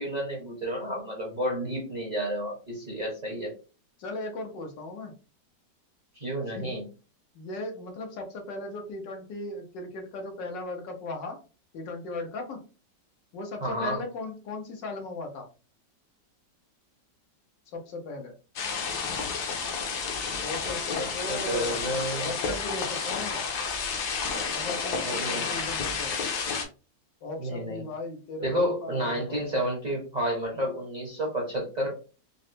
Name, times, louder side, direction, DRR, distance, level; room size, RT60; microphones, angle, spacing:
voice 1, 0.0-3.5 6.2-6.8 13.6-14.0 21.0-22.3 25.0-25.5 27.4-27.9 28.4-31.9, equal, 35° right, -3 dB, 0.7 m, -30 dB
voice 2, 4.0-5.1 6.5-6.7 7.3-11.4 11.7-12.6 13.3-15.5 17.7-18.3 20.4-21.7 22.2-23.4 24.5-26.1 27.2-29.4, left 2 dB, 90° left, 3 dB, 1.6 m, -37 dB
sound 1, 18.6-26.7, left 5 dB, 70° left, 1.2 m, -31 dB
4.0 x 2.1 x 2.6 m, 0.34 s
omnidirectional pair, 1.9 m